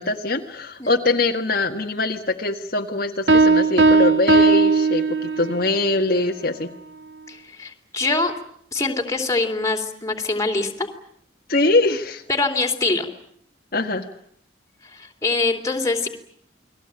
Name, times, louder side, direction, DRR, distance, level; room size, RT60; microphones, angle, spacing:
voice 1, 0.0-6.7 11.5-12.2 13.7-14.1, left 2 dB, 50° left, 2 dB, 1.7 m, -22 dB
voice 2, 0.8-1.1 7.3-8.3 8.7-10.9 12.3-13.1 14.9-16.1, left 3 dB, 15° left, 2 dB, 3.1 m, -24 dB
sound 1, 3.3-5.7, right 3 dB, 75° right, 1.3 m, -17 dB
29.5 x 21.0 x 8.9 m, 0.67 s
head